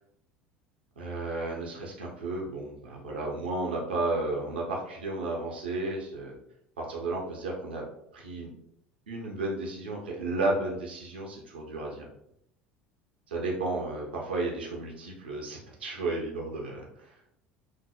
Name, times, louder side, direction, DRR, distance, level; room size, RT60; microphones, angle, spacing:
voice 1, 1.0-6.3 6.8-7.8 8.1-8.5 9.1-12.1 13.3-17.1, right 2 dB, 85° right, -1 dB, 0.5 m, -33 dB
4.4 x 2.0 x 2.3 m, 0.76 s
hypercardioid pair, 70°, 5 cm